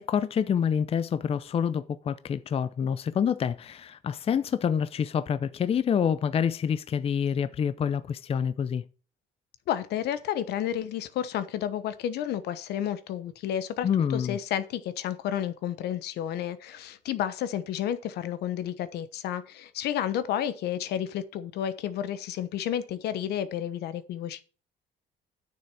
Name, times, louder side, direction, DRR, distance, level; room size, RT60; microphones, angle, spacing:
voice 1, 0.0-8.8 13.8-14.4, left 7 dB, 35° left, 0.6 m, -27 dB
voice 2, 9.7-24.4, left 10 dB, 75° left, 1.1 m, -31 dB
9.6 x 6.9 x 4.8 m
cardioid pair, 110°, 17 cm